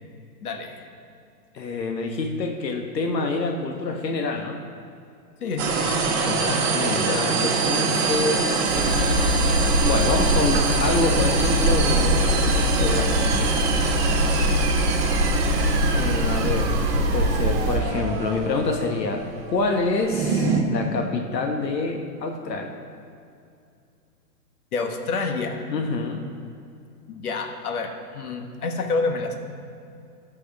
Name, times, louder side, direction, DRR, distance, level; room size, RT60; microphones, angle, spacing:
voice 1, 0.4-0.9 5.4-5.9 6.2-8.0 24.7-25.6 27.1-29.3, left 4 dB, 60° left, 4 dB, 1.4 m, -29 dB
voice 2, 1.5-4.6 6.7-9.0 9.8-13.6 15.9-16.7 17.1-22.7 25.7-26.2, left 3 dB, 80° left, 3 dB, 1.3 m, -27 dB
sound 1, 5.6-20.6, right 4 dB, 40° right, 1.4 m, -25 dB
sound 2, 8.7-17.8, equal, 15° right, 0.8 m, -23 dB
16.0 x 6.3 x 3.5 m, 2.5 s
hypercardioid pair, 155°, 49 cm